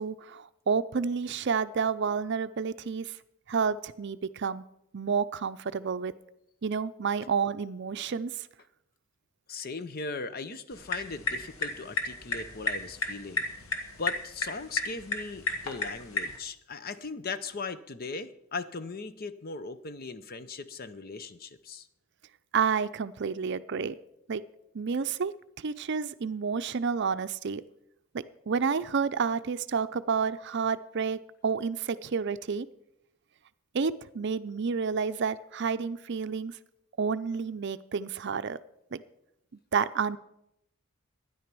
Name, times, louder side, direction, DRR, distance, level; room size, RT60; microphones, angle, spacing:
voice 1, 0.0-3.1 3.5-4.6 4.9-6.1 6.6-8.5 22.5-24.0 24.3-24.4 24.7-25.3 25.6-27.6 28.1-32.7 33.7-36.6 37.0-38.6 38.9-39.0 39.7-40.2, right 5 dB, 55° right, 13 dB, 0.5 m, -30 dB
voice 2, 9.5-13.5 14.0-21.9, left 4 dB, 45° left, 13 dB, 0.7 m, -38 dB
sound 1, 10.7-16.4, left 3 dB, 85° left, 1.9 m, -34 dB
12.5 x 10.0 x 6.1 m, 0.81 s
head